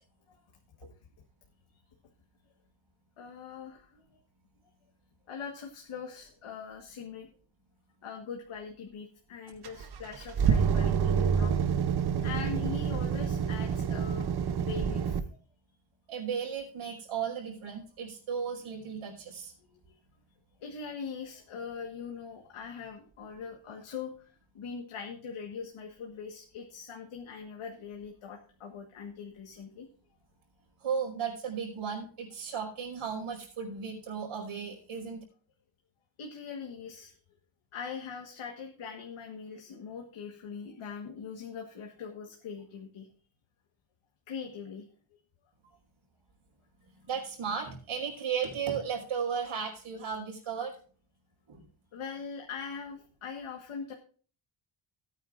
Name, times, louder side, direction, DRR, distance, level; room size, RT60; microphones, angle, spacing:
voice 1, 3.2-4.2 5.3-7.3 8.0-11.5 12.2-14.3 14.6-15.4 19.9-20.0 20.6-29.9 36.2-37.1 37.7-43.1 44.3-44.8 51.9-53.9, left 6 dB, 80° left, 2 dB, 1.6 m, -42 dB
sound 1, 9.6-15.2, right 7 dB, 50° right, 0.9 m, -28 dB
voice 2, 16.1-19.5 30.8-35.2 47.0-50.8 51.5-51.6, right 6 dB, 85° right, 0 dB, 5.2 m, -35 dB
18.0 x 9.1 x 2.5 m, 0.41 s
wide cardioid pair, 150°, 48 cm